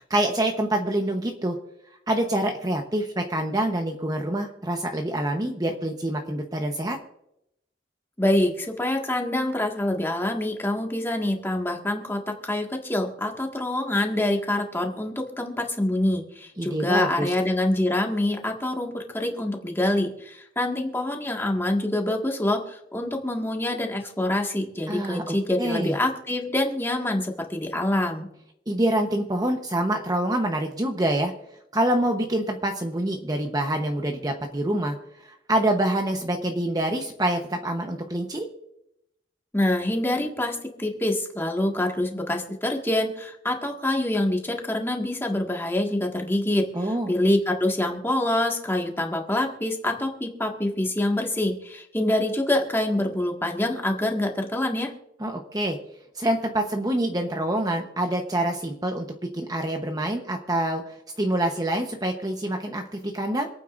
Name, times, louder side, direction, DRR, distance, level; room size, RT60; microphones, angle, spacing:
voice 1, 0.0-1.6 2.1-7.0 16.6-17.3 24.9-26.0 28.7-31.3 31.7-35.0 35.2-38.5 46.7-47.1 55.2-55.8 56.1-59.1 59.3-63.5, right 1 dB, 20° right, 3 dB, 1.0 m, -26 dB
voice 2, 8.2-28.3 39.5-46.6 47.1-54.9, left 1 dB, 15° left, 1 dB, 1.8 m, -26 dB
27.0 x 9.2 x 2.6 m, 0.81 s
head